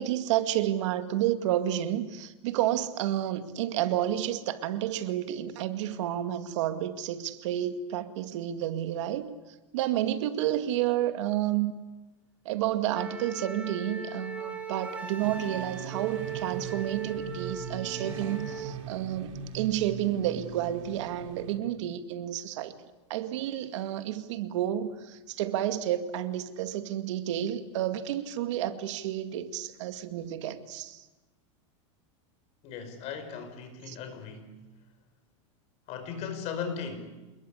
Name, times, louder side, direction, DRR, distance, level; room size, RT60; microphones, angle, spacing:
voice 1, 0.0-9.3 9.7-11.7 12.4-22.7 23.1-31.1 33.9-34.0, right 12 dB, 70° right, 9 dB, 2.2 m, -30 dB
Wind instrument woodwind instrument, 12.9-18.7, right 4 dB, 10° right, 3.6 m, -38 dB
sound 1, 15.2-21.6, right 8 dB, 85° right, 3.2 m, -41 dB
voice 2, 32.6-34.6 35.9-37.4, left 6 dB, 40° left, 8 dB, 5.4 m, -38 dB
27.5 x 21.0 x 8.4 m, 1.1 s
supercardioid pair, 145°, 16 cm